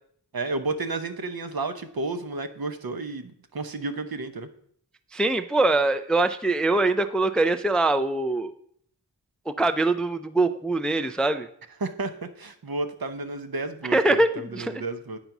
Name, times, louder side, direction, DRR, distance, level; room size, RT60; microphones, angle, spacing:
voice 1, 0.3-4.5 11.8-12.1 12.4-15.2, right 3 dB, 60° right, 8 dB, 0.8 m, -32 dB
voice 2, 5.1-8.5 9.5-11.5 13.9-14.8, right 2 dB, ahead, 9 dB, 0.4 m, -23 dB
9.1 x 4.0 x 5.9 m, 0.65 s
wide cardioid pair, 70°, 41 cm